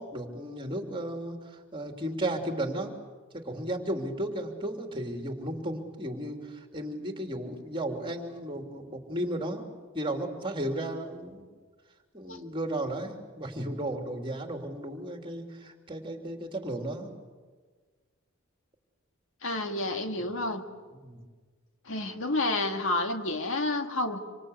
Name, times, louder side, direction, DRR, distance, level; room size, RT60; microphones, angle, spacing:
voice 1, 0.0-2.9 3.3-9.6 9.9-11.5 12.1-17.1 21.0-21.2, right 1 dB, 25° right, 4 dB, 3.2 m, -34 dB
voice 2, 19.4-20.6 21.9-24.2, left 2 dB, 65° left, 5 dB, 2.1 m, -30 dB
27.0 x 25.5 x 8.1 m, 1.4 s
head